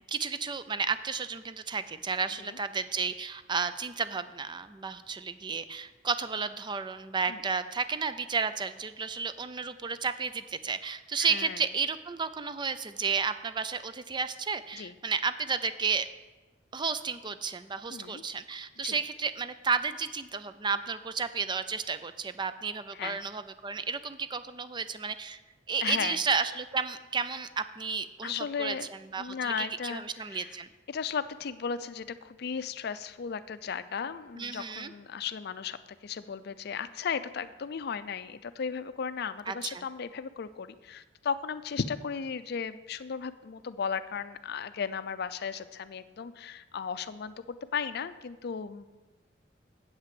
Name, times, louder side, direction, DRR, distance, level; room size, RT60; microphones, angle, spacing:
voice 1, 0.1-16.1 16.7-25.4 25.7-30.7 34.3-34.9 39.5-39.8, right 5 dB, 25° right, 12 dB, 0.4 m, -32 dB
voice 2, 11.2-11.6 14.7-14.9 17.9-18.2 18.8-19.0 22.9-23.2 25.8-26.2 28.2-28.9 29.2-30.6 30.9-47.3 47.7-48.8, left 6 dB, 60° left, 13 dB, 0.5 m, -35 dB
8.1 x 5.9 x 7.6 m, 1.2 s
head